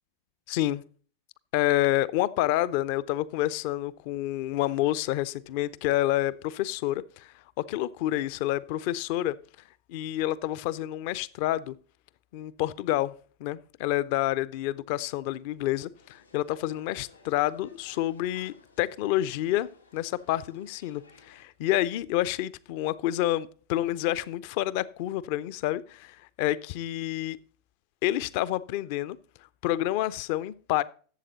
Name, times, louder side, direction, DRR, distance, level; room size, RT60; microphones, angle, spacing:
voice 1, 0.5-0.8 1.5-7.3 7.6-9.4 9.9-11.8 12.3-13.1 13.4-27.4 28.0-29.2 29.6-30.8, left 14 dB, 45° left, 0.5 m, -28 dB
sound 1, 16.0-21.5, left 3 dB, 80° left, 2.7 m, -57 dB
12.0 x 7.7 x 3.9 m
figure-of-eight pair, 90°, 0 cm